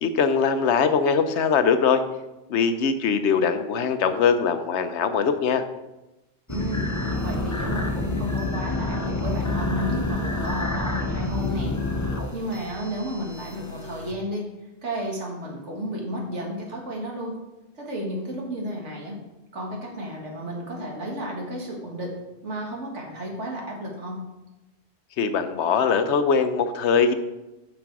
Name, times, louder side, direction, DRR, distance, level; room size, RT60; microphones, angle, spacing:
voice 1, 0.0-2.0 2.5-5.6 25.2-27.1, left 6 dB, 80° left, 9 dB, 1.0 m, -21 dB
sound 1, 6.5-14.1, left 2 dB, 20° left, 0.6 m, -28 dB
voice 2, 6.5-11.7 12.3-14.5 14.8-17.4 17.8-19.2 19.5-22.2 22.4-24.2, equal, 90° right, -1 dB, 2.1 m, -32 dB
7.5 x 6.1 x 4.7 m, 1.0 s
omnidirectional pair, 1.2 m